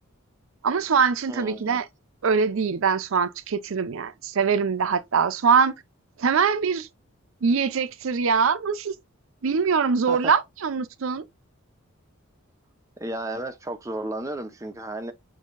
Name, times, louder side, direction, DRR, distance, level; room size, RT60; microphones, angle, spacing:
voice 1, 0.6-1.9 2.2-5.7 6.2-6.9 7.4-8.9 9.4-11.2, right 6 dB, 65° right, 0.5 m, -23 dB
voice 2, 1.3-1.8 10.1-10.3 13.0-15.1, right 1 dB, 15° right, 0.5 m, -33 dB
6.3 x 2.7 x 2.4 m
head